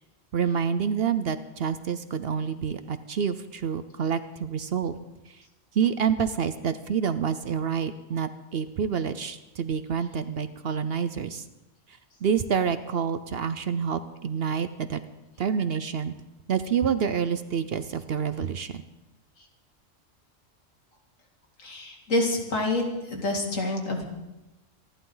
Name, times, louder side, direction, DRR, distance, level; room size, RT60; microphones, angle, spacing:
voice 1, 0.3-4.9 5.7-11.4 12.2-15.0 15.4-16.1 16.5-18.8, right 7 dB, 55° right, 11 dB, 0.8 m, -27 dB
voice 2, 21.6-24.0, left 2 dB, 80° left, 1 dB, 2.8 m, -27 dB
26.5 x 11.5 x 3.9 m, 1.0 s
omnidirectional pair, 1.4 m